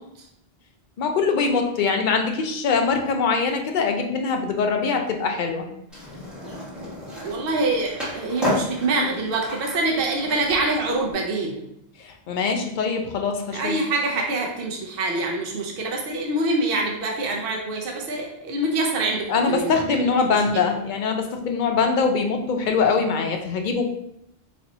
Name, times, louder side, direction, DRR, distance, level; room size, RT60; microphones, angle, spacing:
voice 1, 1.0-5.7 12.0-13.7 19.3-23.8, left 5 dB, 55° left, 4 dB, 0.6 m, -23 dB
Skateboard, 5.9-11.1, left 1 dB, ahead, 1.0 m, -32 dB
voice 2, 7.2-11.6 13.5-19.8 20.3-20.6, right 2 dB, 65° right, 0 dB, 0.8 m, -25 dB
3.2 x 2.6 x 4.1 m, 0.78 s
omnidirectional pair, 1.0 m